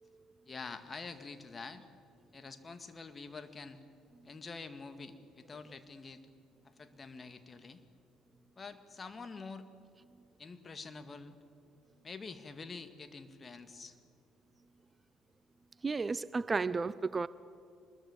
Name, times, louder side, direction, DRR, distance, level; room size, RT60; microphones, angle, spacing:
voice 1, 0.5-1.9 2.3-3.8 4.2-6.2 6.6-7.8 8.6-9.7 10.4-11.4 12.0-14.0, left 4 dB, 35° left, 9 dB, 2.0 m, -47 dB
voice 2, 15.8-17.3, right 4 dB, 30° right, 18 dB, 0.6 m, -33 dB
24.5 x 21.0 x 7.3 m, 2.5 s
hypercardioid pair, 55°, 0 cm